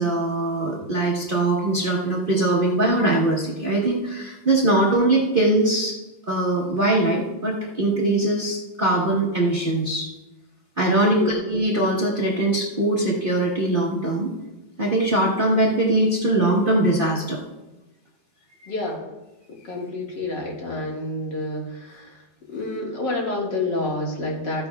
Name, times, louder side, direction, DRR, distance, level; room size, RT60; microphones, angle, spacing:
voice 1, 0.0-6.0 6.3-10.1 10.8-14.3 14.8-17.4, right 2 dB, 30° right, -4 dB, 1.1 m, -21 dB
voice 2, 11.0-11.4 18.7-19.0 19.6-22.2 22.5-24.7, left 2 dB, 60° left, -2 dB, 2.4 m, -28 dB
14.0 x 10.0 x 2.3 m, 1.0 s
omnidirectional pair, 2.3 m